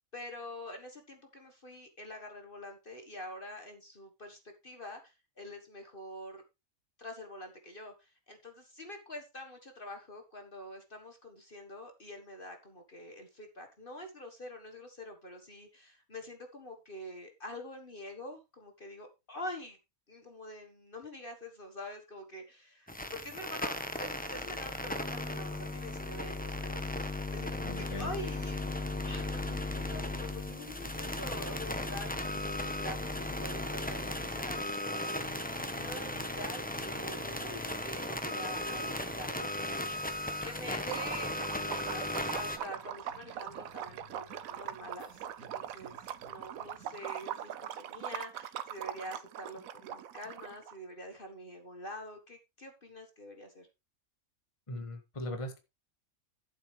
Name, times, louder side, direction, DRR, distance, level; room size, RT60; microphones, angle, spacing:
voice 1, 0.1-6.4 7.0-19.8 20.1-28.6 29.0-42.1 42.3-53.7, left 1 dB, 40° left, 4 dB, 1.6 m, -46 dB
sound 1, 22.9-42.6, left 1 dB, 5° left, 0.9 m, -36 dB
voice 2, 27.6-28.1 54.7-55.6, left 1 dB, 20° left, 6 dB, 1.5 m, -39 dB
sound 2, 38.3-46.9, left 1 dB, 25° right, 3.0 m, -63 dB
Liquid, 40.9-50.7, right 10 dB, 70° right, 1.1 m, -41 dB
12.5 x 7.7 x 3.3 m, 0.25 s
omnidirectional pair, 1.5 m